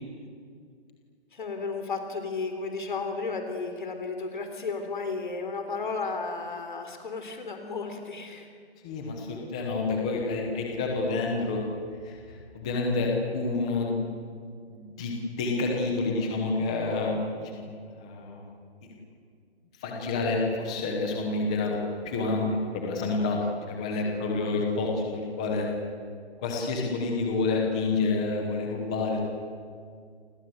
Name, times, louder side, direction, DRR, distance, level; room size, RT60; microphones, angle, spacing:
voice 1, 1.3-8.5 23.4-23.5 24.0-24.2, left 4 dB, 45° left, 6 dB, 3.6 m, -33 dB
voice 2, 8.8-11.6 12.0-14.2 14.7-17.7 18.0-18.5 18.8-18.9 19.8-21.8 22.0-23.4 23.7-25.7 26.4-29.2, left 3 dB, 5° left, 0 dB, 1.0 m, -28 dB
29.0 x 26.0 x 7.9 m, 2.2 s
hypercardioid pair, 180°, 33 cm